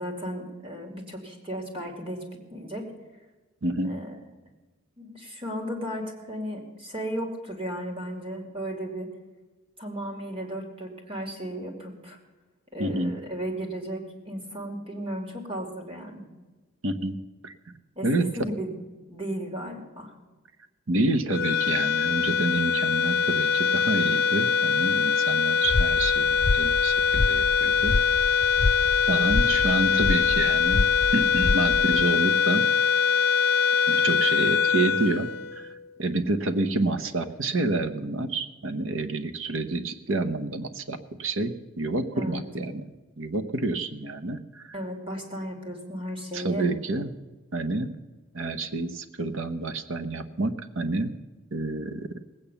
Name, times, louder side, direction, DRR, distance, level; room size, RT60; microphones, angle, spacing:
voice 1, 0.0-2.2 2.5-2.9 3.8-4.1 5.0-9.1 9.8-12.2 12.7-16.3 18.0-18.1 18.4-18.7 19.1-20.1 42.1-42.4 44.7-46.7, equal, 25° right, 2 dB, 2.6 m, -35 dB
voice 2, 3.6-3.9 12.8-13.1 16.8-17.2 17.4-17.5 18.0-18.3 20.9-27.9 29.1-30.9 31.1-32.7 33.9-35.7 36.0-42.9 43.2-44.8 46.3-47.1 47.5-47.9 48.3-51.1 51.5-52.1, right 2 dB, 65° right, 10 dB, 0.9 m, -28 dB
sound 1, 21.3-35.9, left 6 dB, 50° left, 0.8 m, -23 dB
sound 2, 25.6-32.0, left 2 dB, 35° left, 0.4 m, -28 dB
19.0 x 8.8 x 7.0 m, 1.2 s
head